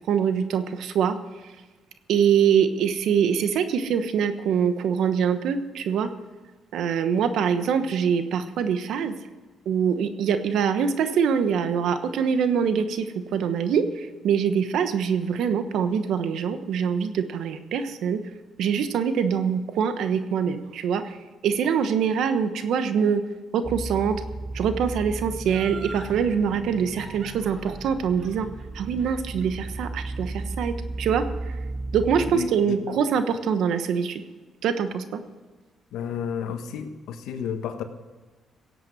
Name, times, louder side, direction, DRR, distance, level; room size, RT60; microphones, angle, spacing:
voice 1, 0.1-1.2 2.1-6.1 6.7-9.2 9.6-18.2 18.6-21.2 21.4-23.2 23.5-24.2 24.5-28.5 28.7-31.5 31.9-34.2 34.6-35.2, right 7 dB, 75° right, 10 dB, 1.1 m, -24 dB
sound 1, 23.6-32.3, right 2 dB, 30° right, 1.3 m, -35 dB
Laughter, 25.4-26.2 27.0-30.1 30.4-30.5, right 3 dB, 55° right, 5.5 m, -42 dB
voice 2, 32.3-33.0 35.9-37.8, left 7 dB, 85° left, 8 dB, 1.3 m, -32 dB
17.0 x 8.3 x 6.3 m, 1.3 s
cardioid pair, 90°, 0 cm